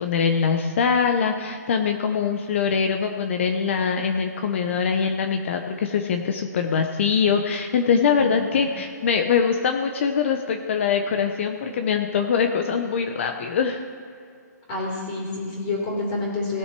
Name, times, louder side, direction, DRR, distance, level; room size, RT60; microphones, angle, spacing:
voice 1, 0.0-13.8, left 6 dB, 45° left, 5 dB, 0.7 m, -23 dB
voice 2, 8.2-8.7 14.7-16.6, left 2 dB, 25° left, -3 dB, 3.3 m, -28 dB
18.5 x 6.4 x 4.6 m, 2.3 s
hypercardioid pair, 155°, 10 cm